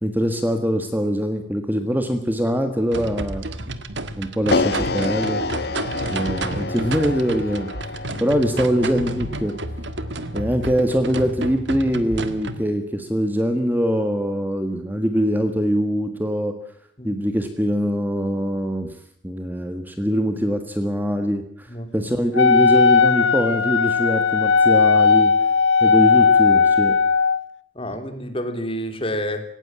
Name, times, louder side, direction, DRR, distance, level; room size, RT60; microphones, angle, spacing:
voice 1, 0.0-3.4 4.2-5.4 6.1-7.7 8.2-9.6 10.3-16.5 17.0-18.9 19.2-21.7 21.9-25.3 25.8-27.0, equal, 10° right, 7 dB, 1.6 m, -23 dB
sound 1, 2.9-12.6, right 1 dB, 70° right, 1.7 m, -30 dB
sound 2, 4.5-10.7, left 2 dB, 55° left, 1.5 m, -28 dB
Wind instrument woodwind instrument, 22.3-27.4, left 5 dB, 75° left, 1.2 m, -16 dB
voice 2, 27.7-29.4, equal, 30° left, 7 dB, 2.9 m, -29 dB
18.0 x 18.0 x 8.8 m, 0.68 s
head